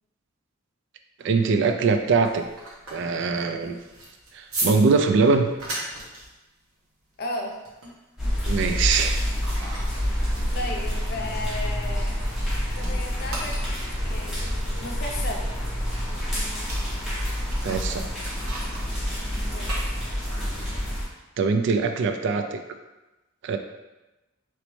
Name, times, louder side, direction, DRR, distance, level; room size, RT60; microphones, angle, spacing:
voice 1, 1.2-2.4 2.9-3.8 4.3-5.5 8.5-9.2 17.6-18.3 21.4-22.6 23.4-23.6, right 4 dB, 55° right, 7 dB, 0.3 m, -22 dB
sound 1, 2.0-12.5 12.8-20.5, right 2 dB, 90° right, 1.1 m, -38 dB
voice 2, 7.2-7.6 10.5-12.1 12.7-13.6 14.0-14.4 14.8-15.5 19.5-20.0, left 2 dB, 50° left, 0 dB, 0.6 m, -34 dB
sound 2, 8.2-21.0, equal, ahead, 0.9 m, -28 dB
4.0 x 3.1 x 3.1 m, 1.0 s
head